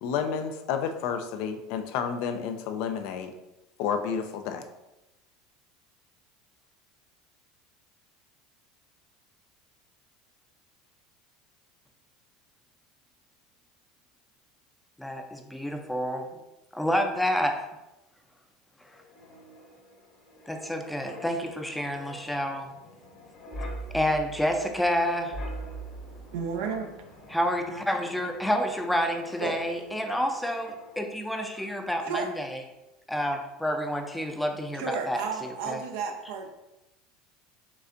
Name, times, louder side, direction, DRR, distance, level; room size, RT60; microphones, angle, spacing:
voice 1, 0.0-3.3 3.8-4.6, left 7 dB, 65° left, 7 dB, 0.5 m, -30 dB
voice 2, 15.0-16.4 16.7-17.6 20.5-22.7 23.9-25.4 27.3-32.6 33.1-35.8, equal, 5° left, 4 dB, 0.5 m, -29 dB
Wind, 18.9-31.3 31.6-31.8, right 1 dB, 50° left, 1.2 m, -44 dB
voice 3, 26.3-26.9 29.4-29.6 32.1-32.3 34.7-36.6, right 5 dB, 75° right, 4 dB, 0.6 m, -32 dB
5.2 x 3.3 x 2.6 m, 0.97 s
hypercardioid pair, 95°, 0 cm